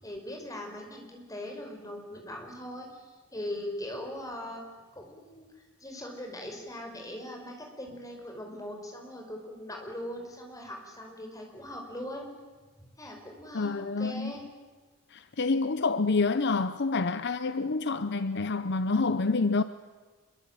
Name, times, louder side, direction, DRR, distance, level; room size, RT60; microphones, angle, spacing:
voice 1, 0.0-2.9 3.3-4.6 4.9-5.5 5.8-12.3 13.0-14.4, left 1 dB, 15° left, 5.2 m, -40 dB
voice 2, 13.5-14.3 15.1-19.6, left 3 dB, 50° left, 0.7 m, -27 dB
26.5 x 23.0 x 9.0 m
head